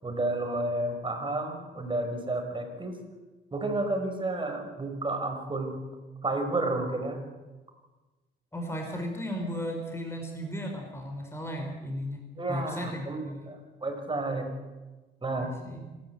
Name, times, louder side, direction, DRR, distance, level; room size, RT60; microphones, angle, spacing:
voice 1, 0.0-3.0 3.5-5.8 6.2-7.2 12.4-14.5 15.2-15.6, right 2 dB, 25° right, 4 dB, 5.4 m, -31 dB
voice 2, 8.5-12.2 12.5-13.5 15.4-16.0, equal, 15° left, 2 dB, 4.6 m, -35 dB
27.0 x 13.0 x 8.3 m, 1.2 s
cardioid pair, 90°, 20 cm